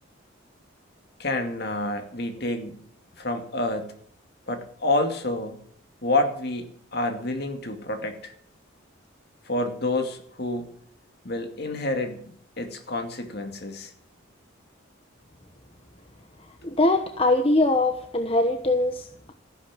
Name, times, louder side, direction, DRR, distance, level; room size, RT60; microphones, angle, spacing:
voice 1, 1.2-2.8 3.2-3.9 4.5-5.6 6.0-8.3 9.5-10.7 11.2-13.9, left 2 dB, 50° left, 6 dB, 2.3 m, -28 dB
voice 2, 16.6-19.3, left 2 dB, 25° left, 6 dB, 1.0 m, -22 dB
15.0 x 11.0 x 7.5 m, 0.63 s
head